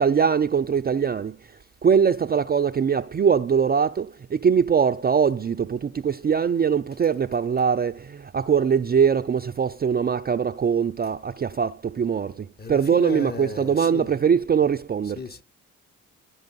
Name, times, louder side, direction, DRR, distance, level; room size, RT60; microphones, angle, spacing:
voice 1, 0.0-1.3 1.8-4.0 4.4-5.8 6.0-7.9 8.3-11.7 12.0-12.3 12.7-15.2, right 7 dB, 25° right, 0.4 m, -21 dB
voice 2, 12.6-14.2 15.0-15.4, left 3 dB, 25° left, 0.7 m, -35 dB
11.5 x 5.1 x 4.0 m
hypercardioid pair, 45°, 41 cm